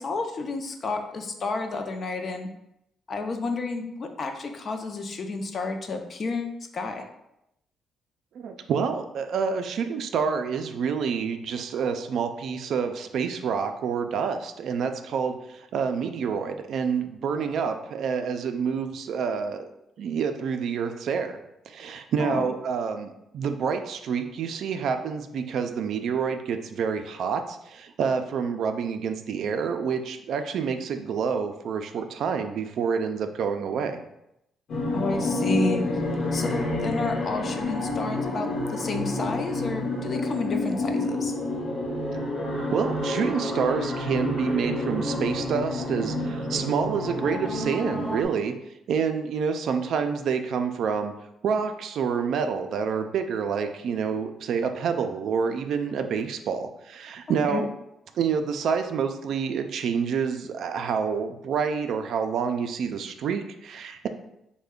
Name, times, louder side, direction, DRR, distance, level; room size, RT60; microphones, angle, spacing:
voice 1, 0.0-2.5 3.1-7.1 22.2-22.5 34.9-35.9 36.3-41.3 57.4-57.6, left 3 dB, 45° left, 5 dB, 0.4 m, -30 dB
voice 2, 8.4-19.7 20.0-21.4 21.7-34.0 42.7-48.5 48.9-51.1 51.4-57.7 58.2-64.1, right 6 dB, 70° right, 7 dB, 0.3 m, -28 dB
sound 1, 34.7-48.3, left 2 dB, 65° left, 1.0 m, -29 dB
3.2 x 2.1 x 3.6 m, 0.83 s
cardioid pair, 90°, 0 cm